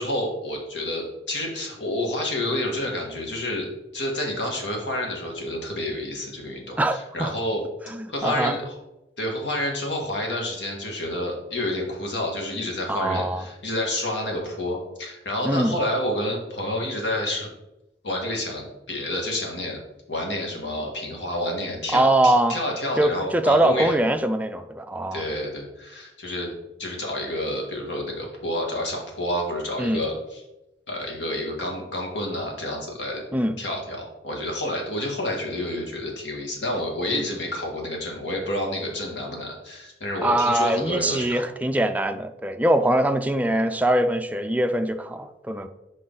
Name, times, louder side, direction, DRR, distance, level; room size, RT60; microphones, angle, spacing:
voice 1, 0.0-3.7 3.9-7.6 8.1-8.8 9.2-17.5 18.0-19.8 20.1-24.0 25.1-26.5 26.8-30.4 30.9-33.2 33.6-41.4, left 1 dB, 85° left, 0 dB, 1.8 m, -29 dB
voice 2, 6.8-7.3 7.9-8.6 12.9-13.4 15.4-15.8 21.9-22.6 23.0-25.3 29.8-30.0 33.3-33.6 37.1-37.2 40.2-45.7, right 1 dB, 10° right, 7 dB, 0.4 m, -22 dB
6.3 x 5.0 x 3.9 m, 0.93 s
head